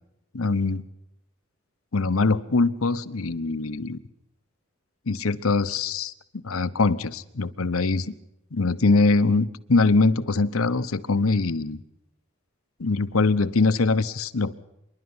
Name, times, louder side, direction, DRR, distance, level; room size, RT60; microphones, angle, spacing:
voice 1, 0.3-0.8 1.9-4.0 5.1-8.1 8.5-11.8 12.8-14.6, left 3 dB, 80° left, 12 dB, 0.9 m, -23 dB
26.0 x 11.5 x 9.6 m, 0.84 s
head